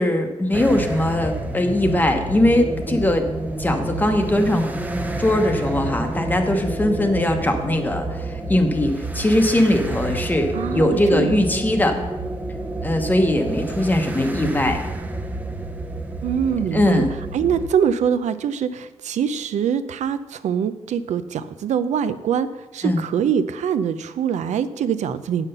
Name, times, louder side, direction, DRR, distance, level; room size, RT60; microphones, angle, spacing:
voice 1, 0.0-3.3 3.6-4.7 5.2-12.0 12.8-14.8 16.7-17.1 22.8-23.0, left 1 dB, 15° left, 5 dB, 0.9 m, -20 dB
sound 1, 0.5-17.7, right 2 dB, 15° right, 0.6 m, -29 dB
voice 2, 10.5-11.5 16.2-17.1 17.3-22.5 22.7-25.5, right 8 dB, 80° right, 13 dB, 0.5 m, -23 dB
9.0 x 5.7 x 6.7 m, 1.1 s
wide cardioid pair, 160°, 12 cm